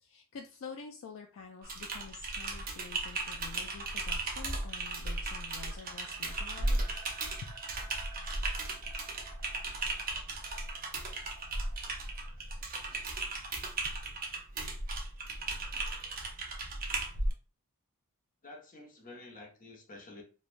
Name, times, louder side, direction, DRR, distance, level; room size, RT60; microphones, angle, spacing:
voice 1, 0.0-6.8 7.4-7.5 13.8-14.0, left 5 dB, 60° left, 3 dB, 0.3 m, -48 dB
Typing, 1.6-17.3, right 2 dB, 40° right, 0.6 m, -36 dB
sound 1, 1.6-13.7, right 3 dB, 90° right, 0.6 m, -56 dB
voice 2, 18.4-20.2, left 2 dB, 40° left, 1 dB, 0.8 m, -49 dB
3.1 x 2.2 x 2.4 m, 0.36 s
head